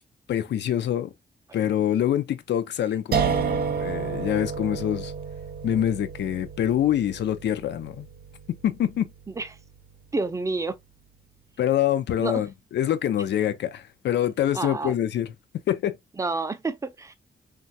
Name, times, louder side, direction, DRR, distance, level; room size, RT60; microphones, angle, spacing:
voice 1, 0.3-1.1 1.5-5.1 5.6-8.1 8.5-9.1 11.6-15.3 15.7-16.0, left 11 dB, 90° left, 0.4 m, -25 dB
sound 1, 3.1-10.1, right 6 dB, 65° right, 0.5 m, -31 dB
voice 2, 10.1-10.8 12.2-12.4 14.5-15.0 16.2-17.1, right 3 dB, 20° right, 0.4 m, -29 dB
3.2 x 2.3 x 2.6 m
wide cardioid pair, 120°, 18 cm